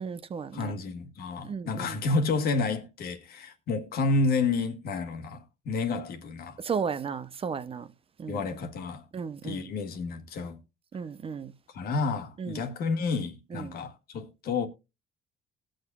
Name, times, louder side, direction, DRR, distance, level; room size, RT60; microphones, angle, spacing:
voice 1, 0.0-0.7 1.4-2.0 6.6-7.9 8.2-8.4 9.1-9.7 10.9-11.5 12.4-12.6 13.5-13.7, right 6 dB, 35° right, 0.7 m, -34 dB
voice 2, 0.5-6.6 8.3-9.0 9.4-10.6 11.7-14.7, left 3 dB, 65° left, 1.7 m, -30 dB
19.0 x 6.4 x 2.3 m
cardioid pair, 110°, 17 cm